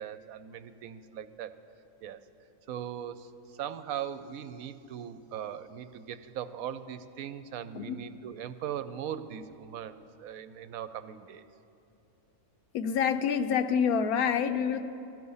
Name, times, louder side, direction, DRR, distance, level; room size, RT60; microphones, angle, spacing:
voice 1, 0.0-1.6 2.0-2.2 2.7-11.4, right 9 dB, 80° right, 12 dB, 1.0 m, -39 dB
voice 2, 12.7-14.8, left 7 dB, 90° left, 9 dB, 1.2 m, -27 dB
17.0 x 12.5 x 5.5 m, 2.7 s
omnidirectional pair, 1.5 m